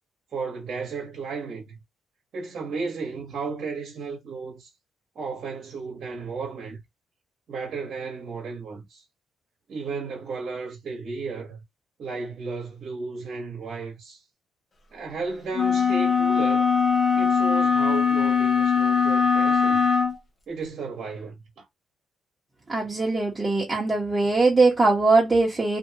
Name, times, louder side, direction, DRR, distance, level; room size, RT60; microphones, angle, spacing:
voice 1, 0.3-1.8 2.3-4.7 5.1-6.8 7.5-9.0 9.7-11.6 12.0-14.2 14.9-16.7 17.1-19.8 20.5-21.6, right 4 dB, 60° right, 1.2 m, -34 dB
sound 1, 15.5-20.2, left 6 dB, 30° left, 0.8 m, -21 dB
voice 2, 22.7-25.8, right 3 dB, 20° right, 1.2 m, -21 dB
2.7 x 2.6 x 2.8 m
cardioid pair, 90°, 0 cm